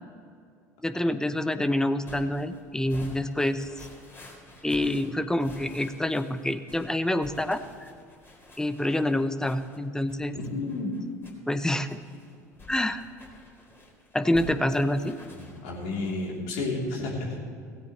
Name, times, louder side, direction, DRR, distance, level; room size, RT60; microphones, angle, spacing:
voice 1, 0.8-3.9 4.6-7.9 8.6-10.3 11.5-12.0 12.7-13.0 14.1-15.1, left 1 dB, 5° left, 12 dB, 0.8 m, -27 dB
sound 1, 2.0-16.4, left 3 dB, 25° left, 3.9 m, -50 dB
voice 2, 10.3-10.9 15.3-17.4, left 2 dB, 65° left, -2 dB, 3.6 m, -31 dB
17.0 x 17.0 x 3.3 m, 2.4 s
hypercardioid pair, 70°, 9 cm